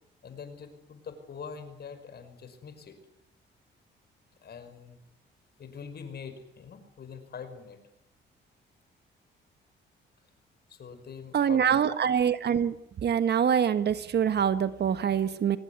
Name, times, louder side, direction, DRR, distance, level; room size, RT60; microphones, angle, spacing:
voice 1, 0.2-3.0 4.4-5.0 5.6-7.8 10.7-11.8, left 6 dB, 55° left, 9 dB, 5.6 m, -44 dB
voice 2, 11.3-15.6, right 8 dB, 55° right, 12 dB, 1.5 m, -25 dB
24.0 x 19.0 x 9.7 m, 0.79 s
cardioid pair, 90°, 20 cm